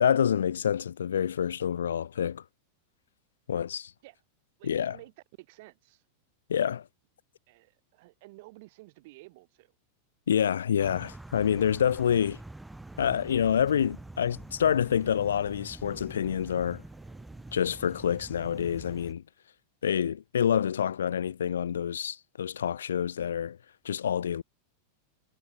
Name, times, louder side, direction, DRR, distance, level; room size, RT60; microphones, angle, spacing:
voice 1, 0.0-2.4 3.5-3.9 4.6-5.0 6.5-6.9 10.3-12.4 13.0-16.8 17.5-19.2 19.8-23.6 23.8-24.4, left 8 dB, 65° left, 0.3 m, -27 dB
voice 2, 4.6-6.0 7.5-9.7, right 22 dB, 50° right, 5.2 m, -52 dB
sound 1, 10.8-19.1, right 2 dB, 5° right, 0.5 m, -46 dB
sound 2, 15.7-18.0, right 9 dB, 25° right, 3.2 m, -63 dB
figure-of-eight pair, 90°, 0 cm